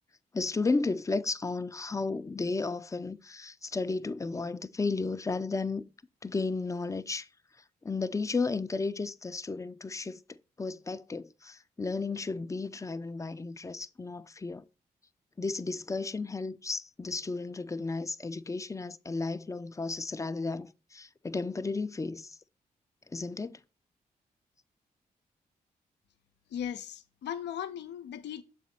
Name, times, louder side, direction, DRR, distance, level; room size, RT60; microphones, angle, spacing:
voice 1, 0.3-5.8 6.2-7.3 7.8-10.2 10.6-14.6 15.4-22.4 23.1-23.6, left 3 dB, 15° left, 0.5 m, -33 dB
voice 2, 26.5-28.4, left 9 dB, 80° left, 0.6 m, -37 dB
7.2 x 4.2 x 4.2 m
hypercardioid pair, 40°, 18 cm